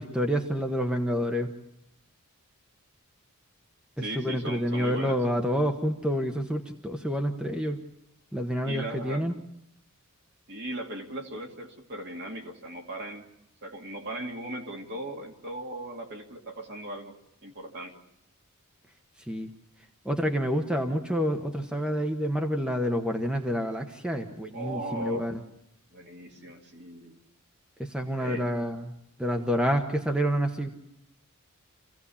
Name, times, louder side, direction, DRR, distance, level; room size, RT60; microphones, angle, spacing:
voice 1, 0.0-1.5 4.0-7.8 8.3-9.3 19.3-19.5 20.0-25.4 27.8-28.9 29.2-30.7, equal, 5° right, 4 dB, 1.1 m, -28 dB
voice 2, 4.0-5.2 8.6-9.3 10.5-13.2 13.6-17.1 17.4-17.9 24.5-25.3 25.9-27.2 28.2-28.5, right 1 dB, 50° right, 2 dB, 2.5 m, -38 dB
27.0 x 16.5 x 7.1 m, 0.82 s
head